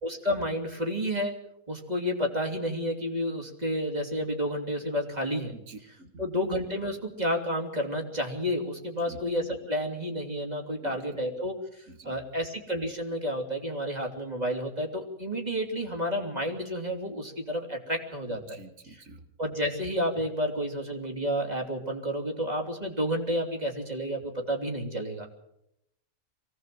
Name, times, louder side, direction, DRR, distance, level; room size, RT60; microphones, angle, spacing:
voice 1, 0.0-1.3 1.7-5.5 6.2-18.6 18.8-19.0 19.4-25.3, equal, 30° right, 1 dB, 3.2 m, -30 dB
voice 2, 5.5-6.1 9.1-9.2 10.8-11.0 11.9-12.2 18.3-19.2, right 2 dB, 60° right, 9 dB, 2.2 m, -47 dB
24.0 x 17.5 x 7.7 m, 0.81 s
omnidirectional pair, 1.5 m